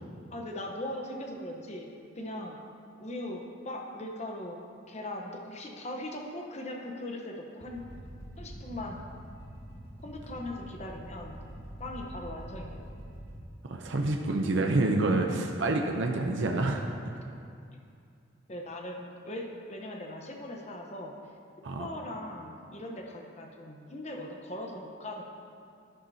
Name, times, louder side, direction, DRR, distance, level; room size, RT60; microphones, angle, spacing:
voice 1, 0.3-1.9 2.2-2.6 3.0-7.9 8.4-9.0 10.0-11.4 11.8-13.0 18.5-21.1 21.8-25.2, left 1 dB, 35° left, 1 dB, 0.9 m, -39 dB
sound 1, 7.6-13.3, equal, 25° right, 1.7 m, -45 dB
voice 2, 13.6-16.9 21.6-21.9, right 2 dB, 65° right, 2 dB, 0.6 m, -28 dB
11.5 x 10.5 x 2.8 m, 2.5 s
head